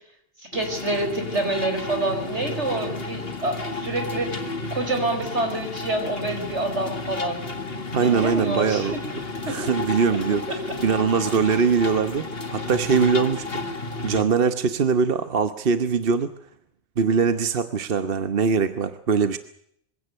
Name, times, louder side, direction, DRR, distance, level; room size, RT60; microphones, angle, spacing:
sound 1, 0.5-14.2, left 3 dB, 60° left, 2.3 m, -32 dB
voice 1, 0.5-7.4 8.0-8.9, right 2 dB, 85° right, 5 dB, 5.7 m, -27 dB
voice 2, 7.9-9.0 9.4-16.3 17.0-19.4, right 5 dB, 55° right, 11 dB, 1.2 m, -22 dB
23.5 x 17.0 x 8.0 m, 0.70 s
omnidirectional pair, 1.1 m